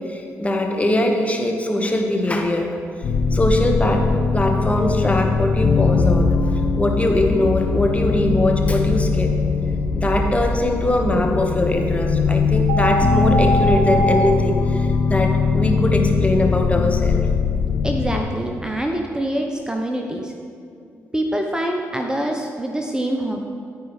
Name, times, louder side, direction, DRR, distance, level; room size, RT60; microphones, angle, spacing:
voice 1, 0.1-2.8 3.3-4.1 4.3-6.3 6.8-9.4 9.9-17.3, left 1 dB, 20° left, 2 dB, 1.2 m, -21 dB
sound 1, 3.0-18.2, left 4 dB, 55° left, 0.7 m, -20 dB
sound 2, 12.7-14.3, right 1 dB, 80° right, 0.6 m, -22 dB
voice 2, 17.8-20.3 21.1-23.4, right 1 dB, 10° right, 2 dB, 0.7 m, -25 dB
14.0 x 4.7 x 3.2 m, 2.4 s
hypercardioid pair, 45°, 6 cm